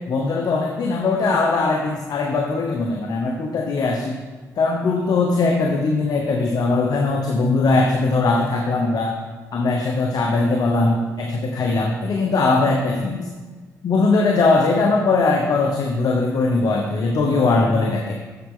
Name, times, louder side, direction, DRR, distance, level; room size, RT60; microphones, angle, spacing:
voice 1, 0.1-4.2 4.6-9.2 9.5-13.3 13.8-18.1, left 3 dB, 60° left, 2 dB, 0.9 m, -20 dB
7.9 x 7.1 x 3.7 m, 1.3 s
supercardioid pair, 65°, 7 cm